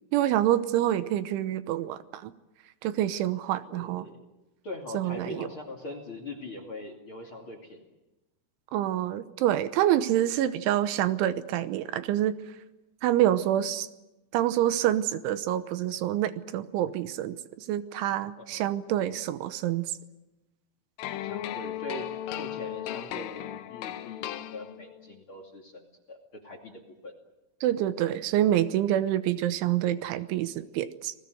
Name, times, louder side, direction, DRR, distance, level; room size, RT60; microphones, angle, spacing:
voice 1, 0.1-2.3 2.8-4.1 4.9-5.5 8.7-12.4 13.0-13.9 14.3-19.9 27.6-31.1, right 12 dB, 80° right, 12 dB, 3.3 m, -27 dB
voice 2, 3.7-4.2 4.6-7.8 18.4-18.6 21.0-26.7 27.0-27.1, left 2 dB, 35° left, 7 dB, 2.6 m, -42 dB
sound 1, 21.0-25.1, left 12 dB, 85° left, 3.7 m, -36 dB
30.0 x 20.0 x 8.0 m, 1.0 s
omnidirectional pair, 5.5 m